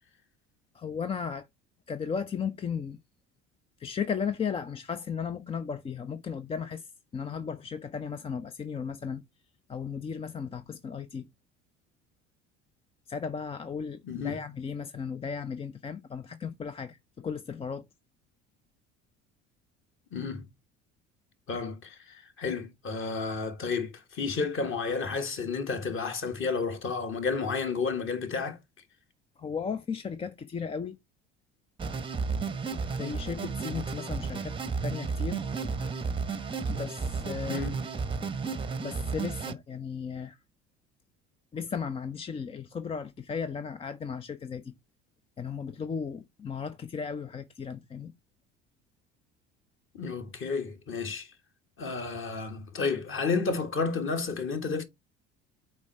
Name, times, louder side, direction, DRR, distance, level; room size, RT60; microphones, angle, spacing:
voice 1, 0.7-1.5 1.9-3.0 3.8-9.2 9.7-11.3 13.1-17.8 29.4-31.0 33.0-34.5 34.8-35.4 36.7-37.7 38.8-40.4 41.5-44.7 45.4-48.1, left 6 dB, 15° left, 0.4 m, -35 dB
voice 2, 14.0-14.4 20.1-20.4 21.5-28.6 37.5-37.7 49.9-51.3 51.8-54.9, left 4 dB, 35° left, 1.6 m, -31 dB
sound 1, 31.8-39.5, right 4 dB, 15° right, 0.8 m, -33 dB
8.3 x 4.5 x 3.3 m
figure-of-eight pair, 60°, 37 cm